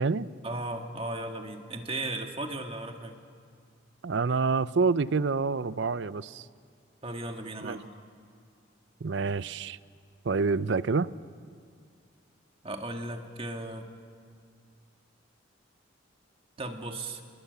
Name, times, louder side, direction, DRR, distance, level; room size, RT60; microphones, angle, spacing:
voice 1, 0.4-3.2 7.0-7.8 12.6-13.9 16.6-17.2, right 2 dB, 30° right, 4 dB, 1.7 m, -36 dB
voice 2, 4.0-6.5 7.6-7.8 9.0-9.8 10.2-11.1, right 4 dB, 60° right, 17 dB, 0.5 m, -27 dB
27.0 x 20.0 x 8.0 m, 2.2 s
head